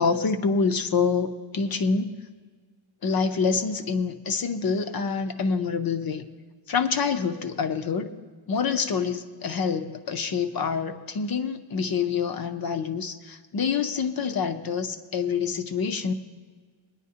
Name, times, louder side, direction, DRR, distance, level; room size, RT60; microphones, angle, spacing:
voice 1, 0.0-2.1 3.0-6.2 6.7-8.1 8.5-16.1, left 5 dB, 50° left, 8 dB, 0.7 m, -26 dB
19.5 x 10.5 x 2.8 m, 1.5 s
wide cardioid pair, 170°, 47 cm